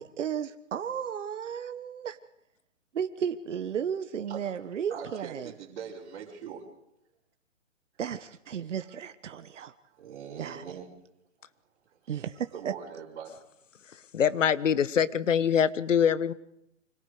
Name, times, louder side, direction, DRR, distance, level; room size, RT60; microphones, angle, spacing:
voice 1, 0.0-2.2 2.9-5.5 8.0-9.7 10.4-10.6 12.1-12.7, right 8 dB, 75° right, 9 dB, 1.4 m, -34 dB
voice 2, 4.9-6.6 9.8-10.9 11.8-12.2 12.5-13.4, right 7 dB, 50° right, -6 dB, 5.1 m, -42 dB
voice 3, 14.1-16.3, left 8 dB, 80° left, 16 dB, 1.3 m, -24 dB
29.0 x 25.5 x 5.0 m, 0.80 s
hypercardioid pair, 145°, 37 cm